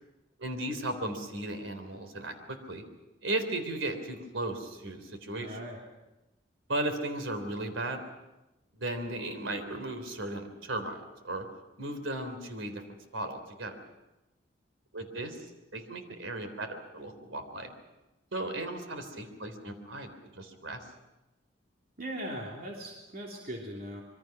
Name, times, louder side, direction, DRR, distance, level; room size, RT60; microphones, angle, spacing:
voice 1, 0.4-2.8 3.2-5.6 6.7-8.0 8.8-11.4 11.8-12.8 13.1-13.8 14.9-17.7 18.3-20.9, right 2 dB, 90° right, 8 dB, 3.5 m, -36 dB
voice 2, 5.4-5.8 22.0-24.0, equal, 50° right, -1 dB, 3.1 m, -39 dB
26.0 x 23.0 x 6.0 m, 1.0 s
head